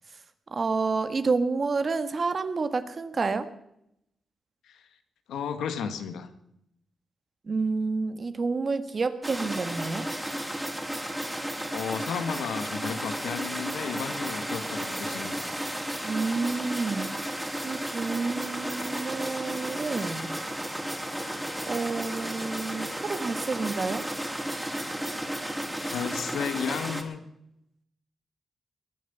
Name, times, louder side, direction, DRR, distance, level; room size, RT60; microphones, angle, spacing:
voice 1, 0.5-3.5 7.5-10.1 16.0-17.1 17.6-20.3 21.7-24.0, right 4 dB, 50° right, 10 dB, 1.7 m, -29 dB
voice 2, 5.3-6.3 11.7-15.4 25.9-27.2, left 7 dB, 85° left, 9 dB, 1.5 m, -33 dB
sound 1, 9.2-27.0, right 1 dB, 10° right, 3.6 m, -33 dB
21.0 x 9.7 x 7.0 m, 0.80 s
supercardioid pair, 50°, 0 cm